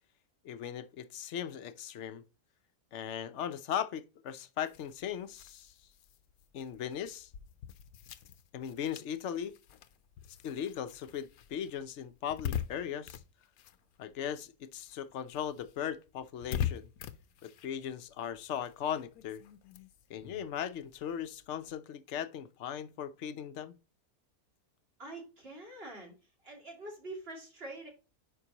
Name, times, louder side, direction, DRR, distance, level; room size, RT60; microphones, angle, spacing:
voice 1, 0.4-2.2 2.9-5.7 6.5-7.3 8.5-9.6 10.4-13.2 14.0-16.9 17.4-19.4 20.1-23.8, left 9 dB, 60° left, 0.9 m, -38 dB
sound 1, 4.6-14.5 14.8-21.7, left 10 dB, 75° left, 1.1 m, -43 dB
voice 2, 25.0-26.1 26.4-27.9, right 2 dB, 40° right, 2.8 m, -45 dB
9.5 x 5.3 x 2.9 m
omnidirectional pair, 1.6 m